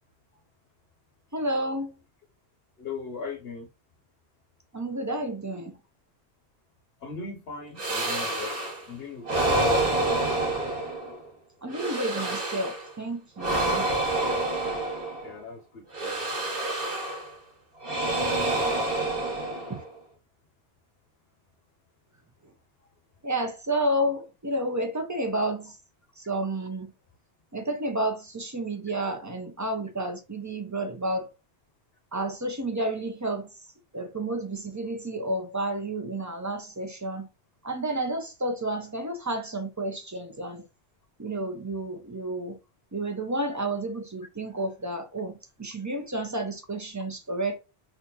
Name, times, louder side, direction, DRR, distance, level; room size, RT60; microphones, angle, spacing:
voice 1, 1.3-1.9 4.7-5.7 11.6-13.9 19.7-19.8 23.2-25.8 26.2-26.9 27.5-31.3 32.1-33.5 33.9-37.3 37.6-40.6 41.2-42.6 42.9-45.3 45.6-47.6, right 1 dB, 20° right, 0.5 m, -31 dB
voice 2, 2.8-3.7 7.0-10.7 15.2-16.3 18.8-19.5, left 4 dB, 70° left, 0.9 m, -39 dB
sound 1, 7.8-8.9 9.2-11.2 11.7-12.9 13.4-15.4 15.9-17.3 17.8-19.9, right 2 dB, 60° right, 1.4 m, -28 dB
3.4 x 2.6 x 2.9 m
omnidirectional pair, 1.1 m